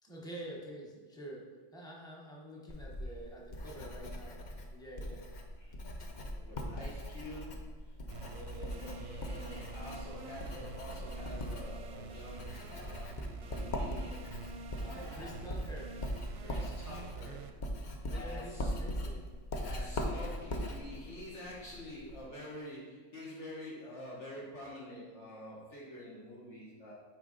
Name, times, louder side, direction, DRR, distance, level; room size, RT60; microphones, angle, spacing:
voice 1, 0.0-1.4 1.7-5.2 14.9-16.0 17.8-19.4, right 1 dB, 5° left, -3 dB, 1.0 m, -47 dB
Writing, 2.7-22.2, left 1 dB, 45° left, 0.8 m, -40 dB
voice 2, 6.2-7.9 8.3-13.1 13.5-14.3 14.7-15.4 16.4-17.4 18.1-18.7 19.6-26.9, left 1 dB, 70° left, -6 dB, 1.6 m, -47 dB
sound 1, 8.1-17.5, right 5 dB, 65° right, 0.8 m, -47 dB
8.1 x 4.4 x 4.0 m, 1.4 s
omnidirectional pair, 1.3 m